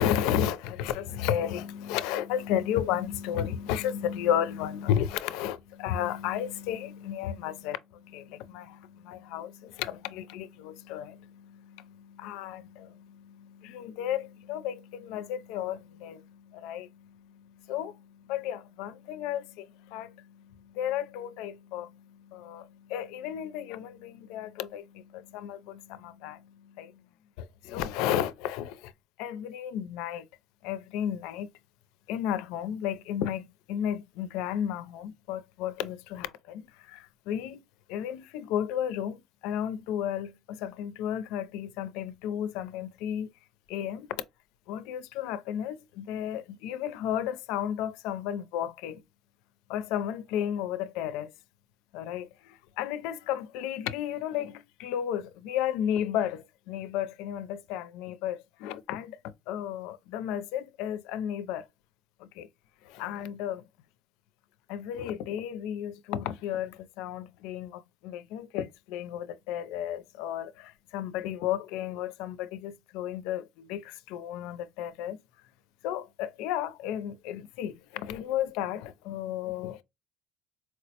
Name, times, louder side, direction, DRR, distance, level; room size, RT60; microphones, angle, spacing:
voice 1, 0.0-27.0 27.4-28.9 29.2-30.3 30.6-31.5 32.1-37.6 37.9-43.3 43.7-44.2 44.7-49.0 49.7-51.3 51.9-59.2 59.5-61.7 62.2-62.5 62.8-63.6 64.7-75.2 75.8-79.8, left 10 dB, 85° left, 0.4 m, -33 dB
4.3 x 2.1 x 2.8 m
cardioid pair, 120°, 0 cm